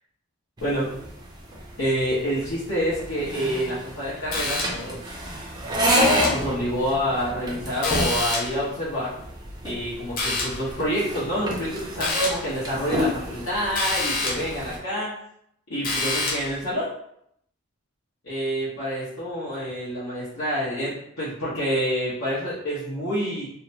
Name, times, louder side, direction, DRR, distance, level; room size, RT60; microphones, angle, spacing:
voice 1, 0.6-0.9 1.8-5.0 6.2-9.1 9.6-15.1 15.7-16.9 18.2-23.5, equal, 85° left, -11 dB, 0.9 m, -27 dB
sound 1, 0.6-14.8, equal, 20° right, 0.3 m, -29 dB
sound 2, 4.3-5.0 5.9-6.5 7.8-8.7 10.2-10.7 12.0-12.5 13.8-14.6 15.8-16.6, left 2 dB, 40° left, 0.5 m, -27 dB
2.7 x 2.1 x 2.7 m, 0.72 s
head